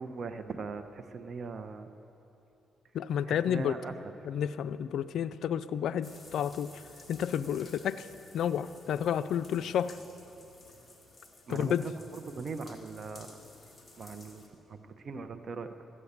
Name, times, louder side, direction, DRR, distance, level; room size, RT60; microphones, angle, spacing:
voice 1, 0.0-1.9 3.3-4.1 11.5-13.3 14.0-15.8, right 4 dB, 50° right, 8 dB, 0.9 m, -40 dB
voice 2, 2.9-3.7 4.2-6.8 7.1-8.1 8.3-10.0 11.5-11.9, left 9 dB, 75° left, 14 dB, 0.4 m, -31 dB
sound 1, 6.0-14.5, left 2 dB, 20° left, 2.2 m, -54 dB
14.0 x 8.8 x 8.2 m, 2.9 s
cardioid pair, 90°, 0 cm